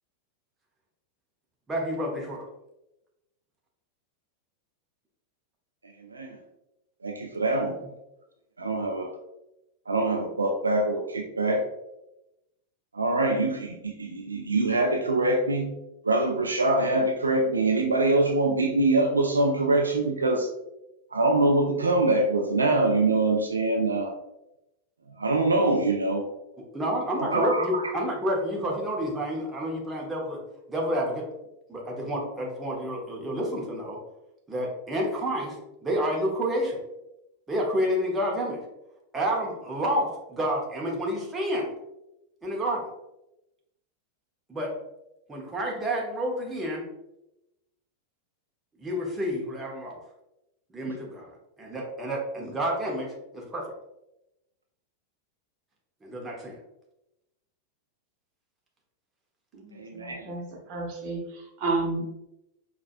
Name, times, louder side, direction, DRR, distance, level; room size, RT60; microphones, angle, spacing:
voice 1, 1.7-2.4 26.7-30.4 30.7-31.3 31.7-34.0 34.5-35.6 35.8-36.8 37.5-38.6 39.1-41.7 42.4-42.9 44.5-44.7 45.3-46.9 48.8-50.0 50.7-51.3 51.6-53.7 56.0-56.6, equal, 15° right, -2 dB, 0.9 m, -29 dB
voice 2, 7.0-7.7 8.6-9.1 9.9-11.7 12.9-15.7 16.0-20.5 21.1-24.1 25.2-26.3 27.3-27.8 59.7-60.3, right 2 dB, 75° right, 1 dB, 0.4 m, -24 dB
voice 3, 59.5-60.4 60.7-62.1, right 3 dB, 45° right, 0 dB, 1.0 m, -31 dB
4.9 x 2.3 x 2.5 m, 0.90 s
figure-of-eight pair, 90°, 0 cm